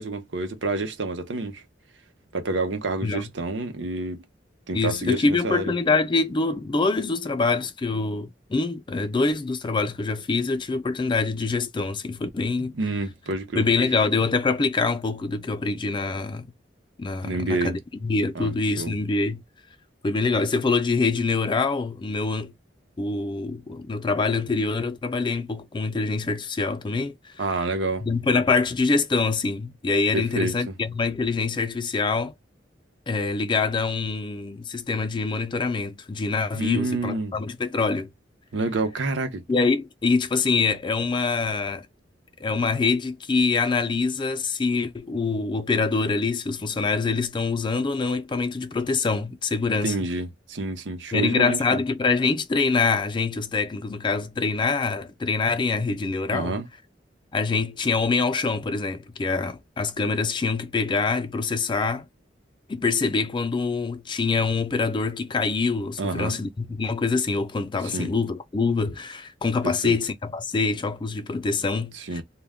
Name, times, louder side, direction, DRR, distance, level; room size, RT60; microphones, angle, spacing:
voice 1, 0.0-1.6 2.3-4.2 4.7-5.7 12.7-13.6 17.2-17.8 18.3-18.9 27.4-28.1 30.1-30.7 36.5-37.4 38.5-39.4 49.8-51.8 56.3-56.6 66.0-66.4 67.8-68.1 69.6-70.0 71.9-72.2, right 2 dB, 85° right, 0.7 m, -28 dB
voice 2, 4.7-12.7 13.5-16.5 17.0-19.4 20.0-22.5 23.0-27.3 28.0-32.3 33.1-38.1 39.5-41.9 42.4-50.0 51.1-56.6 57.3-62.1 62.7-72.2, left 4 dB, 25° left, 0.4 m, -25 dB
2.2 x 2.1 x 3.4 m
head